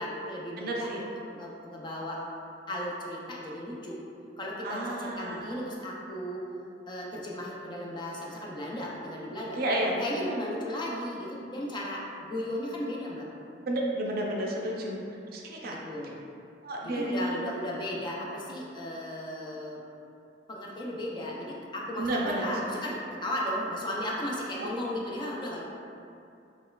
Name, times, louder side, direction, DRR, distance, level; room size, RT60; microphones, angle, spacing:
voice 1, 0.0-2.2 2.7-4.0 4.4-6.4 6.9-9.6 10.0-13.3 15.7-16.1 16.8-19.8 20.5-25.6, left 1 dB, 25° left, -3 dB, 0.4 m, -35 dB
voice 2, 0.6-1.0 4.6-5.6 9.6-10.0 13.6-15.0 15.3-15.7 16.6-17.4 22.0-22.5 24.6-24.7, right 1 dB, 55° right, -2 dB, 0.4 m, -31 dB
4.2 x 2.3 x 2.2 m, 2.6 s
head